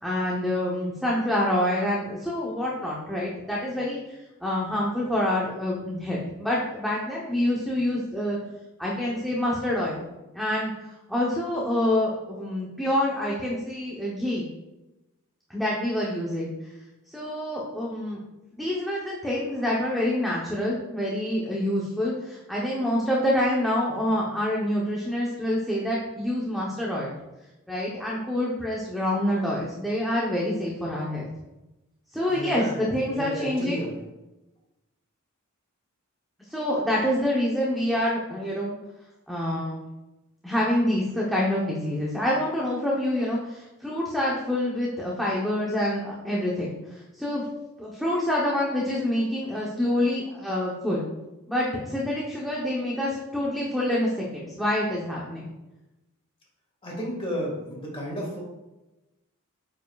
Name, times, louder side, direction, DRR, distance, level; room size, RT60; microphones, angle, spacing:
voice 1, 0.0-8.4 8.8-10.0 10.3-10.7 11.1-14.5 15.5-16.5 17.1-18.2 18.6-27.1 27.7-31.3 32.1-33.8 36.5-38.8 39.3-39.8 40.4-47.4 47.8-51.1 51.5-55.5, left 1 dB, ahead, -6 dB, 0.9 m, -27 dB
voice 2, 32.3-33.9 56.8-58.4, equal, 25° left, -2 dB, 1.9 m, -32 dB
8.6 x 5.3 x 2.4 m, 1.0 s
head